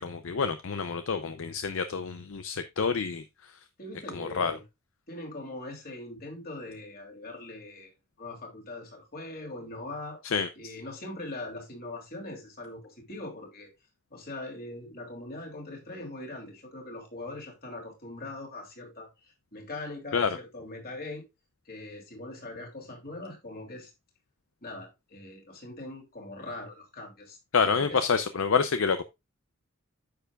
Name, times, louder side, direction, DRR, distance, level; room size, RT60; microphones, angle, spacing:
voice 1, 0.0-3.6 4.1-4.6 10.2-10.7 20.1-20.4 27.5-29.0, left 5 dB, 65° left, 0.5 m, -28 dB
voice 2, 3.8-4.6 5.1-7.9 8.2-10.2 10.6-13.7 14.1-19.1 19.5-21.2 21.6-23.9 24.6-27.4 27.7-28.0, left 2 dB, 45° left, 3.1 m, -41 dB
9.5 x 6.9 x 2.4 m
head